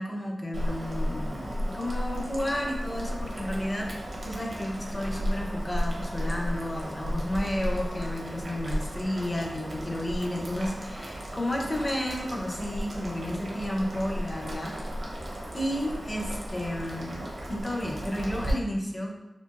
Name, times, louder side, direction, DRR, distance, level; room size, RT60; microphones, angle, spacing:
voice 1, 0.0-3.9 4.2-14.8 15.5-19.2, left 1 dB, 25° left, 0 dB, 0.5 m, -32 dB
Boiling, 0.5-18.5, equal, 65° right, 0.7 m, -34 dB
3.8 x 2.6 x 2.4 m, 0.99 s
wide cardioid pair, 95°, 0 cm